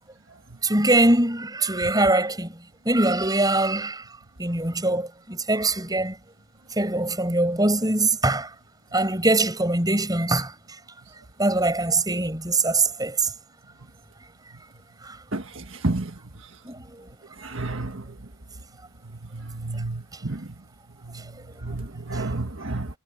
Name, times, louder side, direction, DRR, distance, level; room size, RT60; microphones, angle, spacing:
voice 1, 0.6-2.5 2.8-4.0 4.4-6.1 6.8-8.5 8.9-10.5 11.4-13.3 15.0-15.2 16.6-16.8, right 2 dB, 20° right, 6.9 m, -22 dB
voice 2, 17.4-17.9 19.6-20.4 21.6-22.9, right 2 dB, 70° right, 1.5 m, -29 dB
head